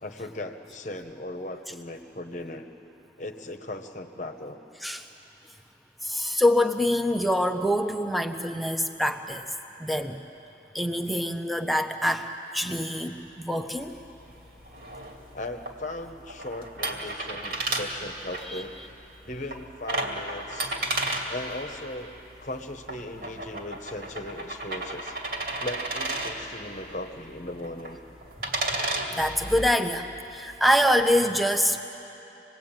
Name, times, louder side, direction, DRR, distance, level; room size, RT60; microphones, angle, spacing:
voice 1, 0.0-2.7 3.2-4.6 15.3-18.7 19.3-20.8 21.3-22.1 22.4-25.2 25.6-28.0, left 1 dB, 40° left, 5 dB, 1.1 m, -37 dB
voice 2, 6.0-9.5 9.8-10.2 10.7-14.0 18.5-18.6 29.1-30.1 30.3-31.8, equal, ahead, 5 dB, 0.9 m, -25 dB
sound 1, 13.8-29.1, right 2 dB, 55° right, 2.5 m, -34 dB
26.5 x 20.5 x 8.9 m, 2.9 s
head